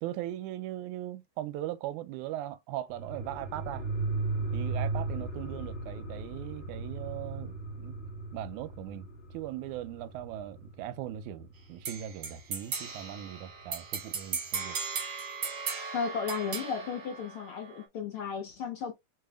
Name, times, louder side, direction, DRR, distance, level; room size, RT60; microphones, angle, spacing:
voice 1, 0.0-3.9 4.5-8.0 8.3-9.1 9.3-14.8, right 13 dB, 90° right, 2.0 m, -39 dB
sound 1, 2.9-12.0 12.4-12.5, right 3 dB, 25° left, 1.7 m, -36 dB
sound 2, 11.8-17.8, right 5 dB, 55° right, 1.2 m, -37 dB
voice 2, 15.9-18.9, left 6 dB, 70° left, 1.3 m, -34 dB
6.8 x 3.1 x 2.4 m
omnidirectional pair, 3.3 m